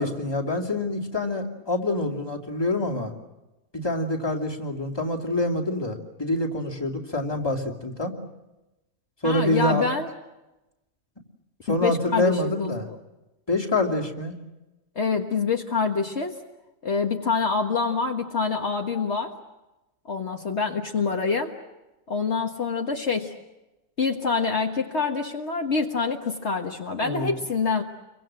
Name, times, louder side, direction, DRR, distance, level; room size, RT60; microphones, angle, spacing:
voice 1, 0.0-3.1 3.7-8.1 9.2-9.8 11.6-12.9 13.5-14.4 27.0-27.4, left 1 dB, 20° left, 2 dB, 2.7 m, -26 dB
voice 2, 9.2-10.1 11.7-12.7 15.0-16.4 16.8-19.3 20.1-21.5 22.1-23.3 24.0-27.8, left 4 dB, 55° left, 2 dB, 1.8 m, -26 dB
29.0 x 24.0 x 7.6 m, 1.0 s
omnidirectional pair, 1.4 m